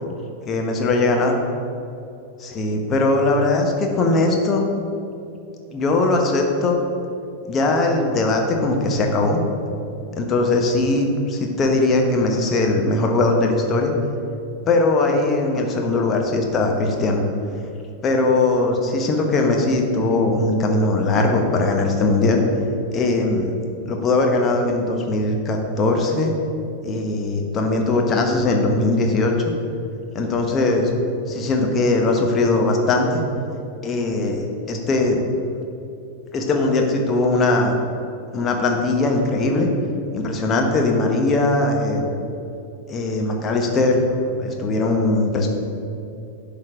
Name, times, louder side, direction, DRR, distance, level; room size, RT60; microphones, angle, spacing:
voice 1, 0.5-1.4 2.4-4.6 5.7-6.8 7.5-9.4 10.2-13.9 14.7-17.2 18.0-22.4 22.9-23.5 23.9-26.3 26.8-29.5 30.1-30.9 31.3-33.2 33.8-35.2 36.3-37.7 38.3-39.7 40.1-42.1 42.9-45.5, left 2 dB, 25° left, 2 dB, 1.1 m, -20 dB
11.0 x 4.0 x 5.0 m, 2.6 s
figure-of-eight pair, 90°, 0 cm